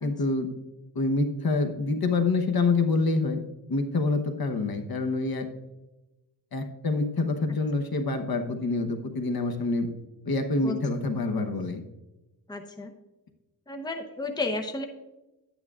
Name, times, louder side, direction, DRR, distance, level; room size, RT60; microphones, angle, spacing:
voice 1, 0.0-0.5 0.9-3.4 3.7-5.5 6.5-9.9 10.2-11.8, left 3 dB, 60° left, 6 dB, 1.0 m, -26 dB
voice 2, 12.5-12.9 13.7-14.8, left 2 dB, 10° left, 4 dB, 0.8 m, -32 dB
11.0 x 9.1 x 2.4 m, 1.0 s
wide cardioid pair, 115°, 42 cm